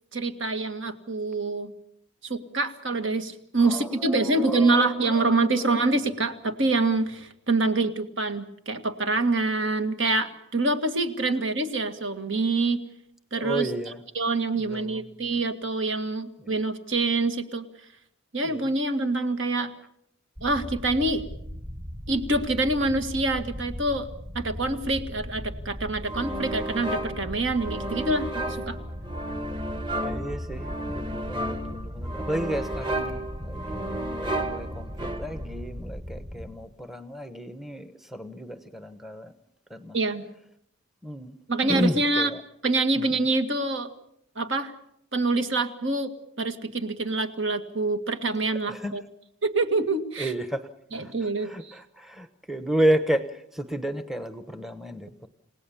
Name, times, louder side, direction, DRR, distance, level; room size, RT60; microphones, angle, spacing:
voice 1, 0.1-1.7 2.2-12.8 13.3-13.7 14.1-17.7 18.3-19.7 20.4-21.2 22.1-24.1 24.4-28.8 39.9-40.3 41.5-42.3 42.6-43.9 44.4-44.7 45.1-46.1 46.4-49.0 49.4-50.3 50.9-51.7, right 2 dB, 60° right, 2.0 m, -26 dB
voice 2, 3.6-5.3 5.6-5.8 13.3-14.0 14.6-15.0 16.4-16.6 18.4-18.6 30.0-39.3 39.7-40.0 41.0-41.4 41.6-42.4 43.0-43.3 48.7-48.9 50.2-55.3, equal, ahead, 1.0 m, -32 dB
sound 1, 20.4-36.5, equal, 40° right, 7.4 m, -38 dB
sound 2, 26.1-35.6, right 1 dB, 25° right, 1.6 m, -33 dB
29.5 x 18.0 x 7.1 m
head